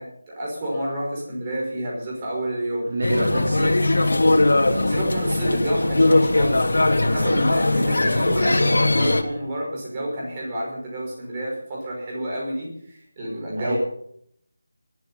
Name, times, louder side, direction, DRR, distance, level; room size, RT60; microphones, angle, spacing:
voice 1, 0.0-2.9 3.3-3.4 4.9-13.7, right 1 dB, 15° right, -3 dB, 5.4 m, -29 dB
voice 2, 2.9-3.7 7.8-8.0 13.6-13.7, right 1 dB, 45° right, -1 dB, 3.6 m, -26 dB
sound 1, 3.0-9.2, left 2 dB, 75° left, 2.9 m, -20 dB
18.5 x 13.0 x 5.7 m, 0.68 s
figure-of-eight pair, 175°, 0 cm